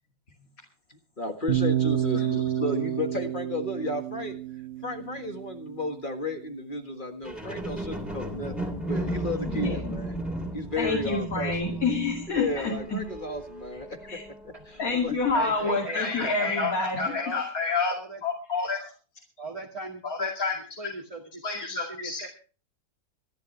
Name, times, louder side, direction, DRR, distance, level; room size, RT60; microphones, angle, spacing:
voice 1, 0.9-4.4 4.8-10.1 10.5-11.8 12.3-14.1 14.7-15.1, left 2 dB, 30° left, 5 dB, 1.7 m, -33 dB
sound 1, 1.5-5.6, right 11 dB, 45° right, 1.8 m, -29 dB
sound 2, 7.2-14.7 15.2-15.3, right 1 dB, ahead, 3.0 m, -35 dB
voice 2, 9.5-10.0 10.8-13.0 14.1-14.2 14.8-17.9 18.2-18.9 20.0-20.6 21.4-22.3, left 4 dB, 55° left, 0 dB, 3.0 m, -28 dB
voice 3, 15.3-17.4 17.7-18.2 19.4-20.3 20.8-22.3, right 2 dB, 20° right, -1 dB, 2.0 m, -39 dB
26.0 x 10.5 x 3.3 m, 0.38 s
omnidirectional pair, 1.8 m